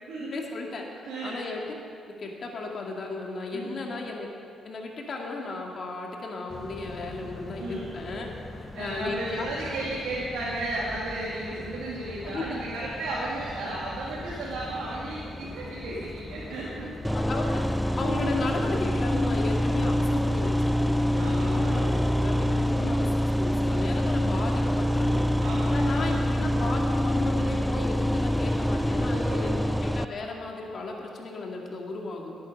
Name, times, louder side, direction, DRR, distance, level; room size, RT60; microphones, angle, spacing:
voice 1, 0.3-0.8 1.2-1.8 2.2-4.3 4.6-8.3 8.8-9.5 9.8-9.9 11.6-11.7 12.2-12.4 17.1-25.3 25.7-32.3, left 3 dB, 50° left, 0 dB, 2.0 m, -35 dB
voice 2, 1.1-1.4 3.5-3.9 7.6-7.9 8.7-16.9 21.2-21.9 25.4-26.2 29.1-29.5, right 2 dB, 80° right, -7 dB, 2.3 m, -34 dB
sound 1, 6.5-18.7, left 2 dB, 20° left, 1.0 m, -42 dB
sound 2, 17.0-30.0, equal, ahead, 0.4 m, -25 dB
17.5 x 8.6 x 5.2 m, 2.4 s
cardioid pair, 90°, 0 cm